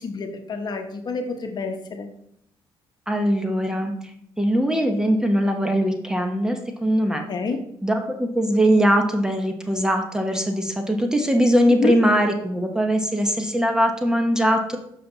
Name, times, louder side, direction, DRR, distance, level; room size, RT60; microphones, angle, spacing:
voice 1, 0.0-2.1 7.3-7.6 11.7-12.0, left 4 dB, 45° left, 5 dB, 1.0 m, -28 dB
voice 2, 3.1-3.9 4.4-7.3 7.8-14.8, equal, 5° right, 4 dB, 1.0 m, -21 dB
7.6 x 5.9 x 4.0 m, 0.74 s
cardioid pair, 100°, 10 cm